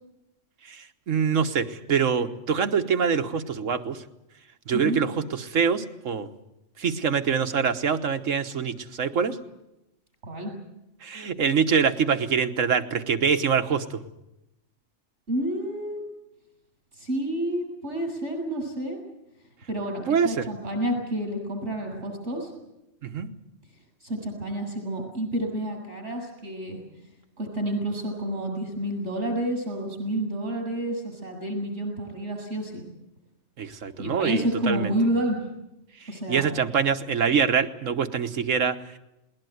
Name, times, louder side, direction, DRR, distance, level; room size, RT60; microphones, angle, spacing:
voice 1, 0.7-4.0 4.7-6.3 6.8-9.4 11.0-14.0 20.1-20.5 23.0-23.3 33.6-34.9 36.0-38.8, right 6 dB, 85° right, 8 dB, 1.6 m, -25 dB
voice 2, 4.7-5.0 10.2-10.5 15.3-16.0 16.9-19.0 19.7-22.5 24.0-26.8 27.4-32.8 34.0-35.4 36.1-36.6, right 1 dB, 65° right, 1 dB, 7.6 m, -29 dB
20.0 x 19.5 x 9.3 m, 0.91 s
omnidirectional pair, 1.3 m